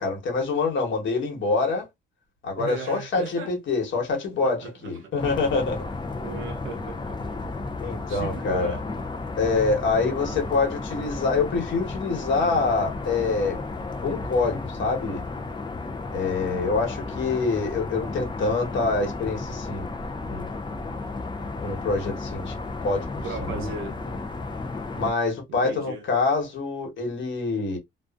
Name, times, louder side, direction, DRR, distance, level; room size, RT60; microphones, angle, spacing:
voice 1, 0.0-1.9 2.4-5.8 7.8-8.8 9.4-13.6 14.0-15.2 16.1-19.9 20.3-20.5 21.6-22.5 22.8-23.7 24.0-24.1 24.9-27.8, left 4 dB, 70° left, 1.3 m, -26 dB
voice 2, 2.6-3.5 4.4-5.1 6.2-7.2 8.1-8.8 10.1-10.4 23.2-24.0 25.5-26.1, right 5 dB, 85° right, 0.8 m, -37 dB
sound 1, 5.2-25.1, left 3 dB, 25° left, 0.5 m, -33 dB
2.4 x 2.3 x 2.4 m
cardioid pair, 90°, 20 cm